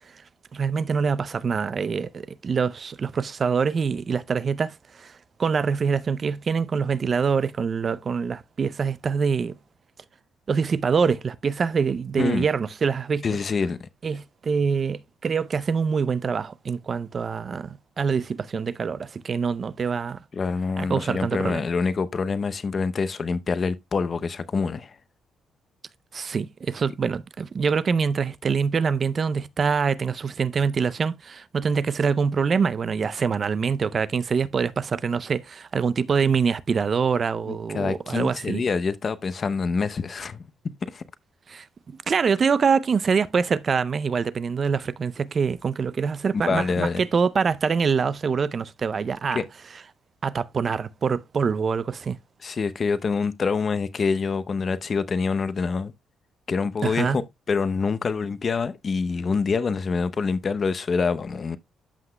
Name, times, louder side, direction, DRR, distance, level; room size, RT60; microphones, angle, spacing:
voice 1, 0.5-5.1 5.4-9.6 10.5-13.4 14.0-20.2 20.8-21.7 26.1-38.6 41.5-49.4 50.2-52.2 56.8-57.2, right 5 dB, 45° right, 0.5 m, -25 dB
voice 2, 13.2-13.8 20.3-24.9 37.5-40.4 40.9-41.0 46.5-47.0 49.3-49.4 52.4-55.9 56.5-57.2 57.5-61.6, left 5 dB, 40° left, 0.7 m, -26 dB
13.5 x 5.8 x 2.2 m
cardioid pair, 90°, 0 cm